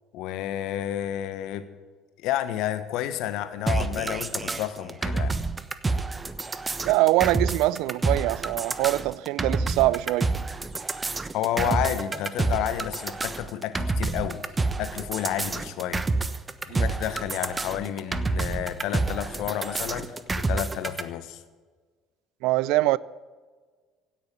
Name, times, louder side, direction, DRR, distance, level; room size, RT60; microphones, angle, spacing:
voice 1, 0.1-1.7 2.2-5.4 11.3-14.4 14.8-16.0 16.7-21.4, left 12 dB, 60° left, 1.3 m, -30 dB
sound 1, 3.7-21.0, right 3 dB, 20° right, 1.1 m, -28 dB
voice 2, 6.8-10.4 11.6-11.8 16.7-16.9 22.4-23.0, right 18 dB, 65° right, 0.4 m, -24 dB
16.5 x 9.0 x 9.4 m
figure-of-eight pair, 60°, 0 cm